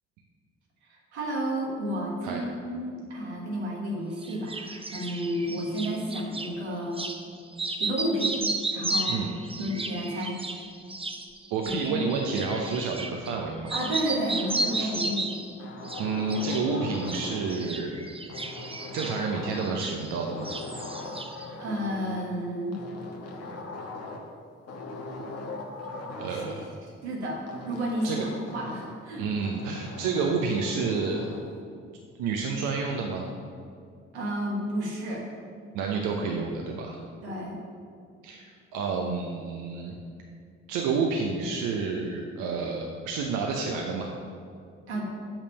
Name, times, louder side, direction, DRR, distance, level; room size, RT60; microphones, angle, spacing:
voice 1, 0.9-7.0 7.8-8.4 8.7-9.2 9.6-10.4 11.6-12.0 13.7-15.3 21.6-22.8 26.3-26.4 27.0-29.2 34.1-35.2 37.2-37.6 44.9-45.0, equal, 90° right, -2 dB, 1.4 m, -31 dB
sound 1, 4.2-6.5 6.9-7.2 7.5-13.4 13.7-15.5 15.8-16.7 16.9-20.2 20.4-21.5, right 2 dB, 15° right, 0.9 m, -33 dB
voice 2, 10.2-10.6 11.5-13.7 14.8-14.9 16.0-18.0 18.9-20.5 26.2-26.6 28.0-28.3 29.2-31.3 32.2-33.3 35.7-37.0 38.2-38.5 38.7-40.0 40.7-44.2, right 4 dB, 70° right, 1 dB, 0.8 m, -29 dB
sound 2, 13.7-15.2 15.6-17.7 18.3-19.9 20.2-22.2 22.7-24.3 24.7-26.7 27.5-29.0 29.4-31.5, left 2 dB, 50° left, 1.3 m, -40 dB
6.8 x 5.9 x 6.8 m, 2.3 s
hypercardioid pair, 45°, 32 cm